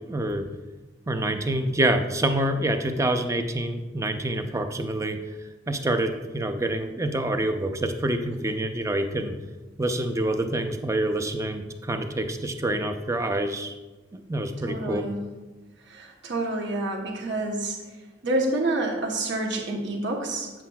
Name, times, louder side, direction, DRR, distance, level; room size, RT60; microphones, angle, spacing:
voice 1, 0.1-0.5 1.1-5.2 5.7-9.3 9.8-13.7 14.1-15.1, right 1 dB, 15° right, 6 dB, 0.5 m, -26 dB
voice 2, 14.6-15.3 15.8-17.8 18.2-20.5, right 2 dB, 65° right, 0 dB, 1.0 m, -28 dB
8.3 x 7.4 x 2.3 m, 1.2 s
head